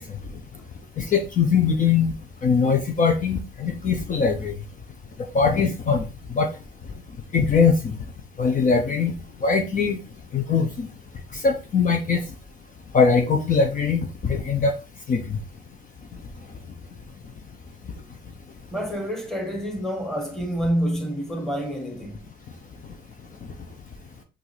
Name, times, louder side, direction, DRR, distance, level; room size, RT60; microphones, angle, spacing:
voice 1, 1.0-2.1 2.4-4.5 5.3-6.0 6.3-6.5 7.3-8.0 8.4-9.1 9.4-10.0 10.3-10.9 11.4-12.2 12.9-14.7 15.1-15.4, left 5 dB, 45° left, 0.8 m, -21 dB
voice 2, 18.7-22.2, equal, 5° left, 1.5 m, -28 dB
5.9 x 2.6 x 3.3 m
supercardioid pair, 65°, 19 cm